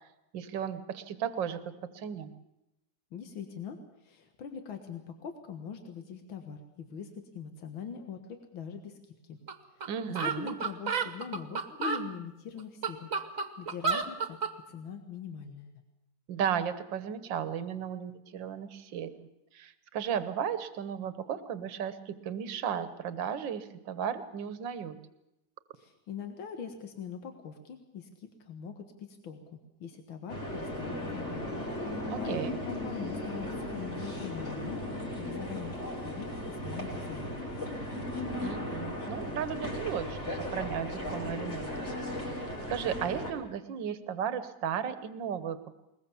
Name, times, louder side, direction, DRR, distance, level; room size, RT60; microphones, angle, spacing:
voice 1, 0.3-2.3 9.9-10.5 16.3-19.3 19.5-25.0 32.1-32.6 38.4-41.7 42.7-45.7, right 8 dB, 70° right, 12 dB, 1.9 m, -35 dB
voice 2, 3.1-9.4 9.7-13.1 13.6-14.4 14.7-15.8 25.7-31.4 31.8-37.4, left 6 dB, 90° left, 6 dB, 2.3 m, -42 dB
sound 1, 9.5-9.6 9.8-9.9 10.1-12.0 12.6-14.5, right 5 dB, 45° right, 1.6 m, -31 dB
sound 2, 30.3-43.3, left 1 dB, 35° left, 4.7 m, -36 dB
21.0 x 20.5 x 7.1 m, 0.87 s
omnidirectional pair, 2.1 m